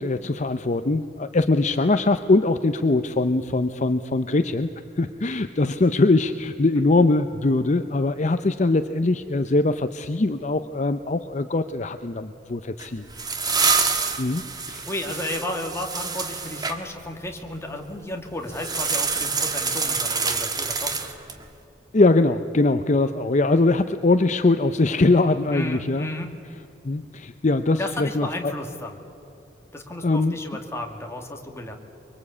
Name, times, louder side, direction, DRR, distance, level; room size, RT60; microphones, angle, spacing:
voice 1, 0.0-4.7 5.0-13.1 14.2-14.4 14.7-14.9 21.9-26.1 26.8-28.5 30.0-30.4, left 2 dB, 40° left, 9 dB, 0.6 m, -22 dB
sound 1, 12.8-16.8 18.5-21.4, right 5 dB, 20° right, 1.5 m, -26 dB
voice 2, 14.8-20.9 25.5-26.3 27.8-28.9 29.7-31.8, left 1 dB, 15° left, 2 dB, 2.2 m, -33 dB
24.0 x 23.5 x 8.5 m, 2.9 s
head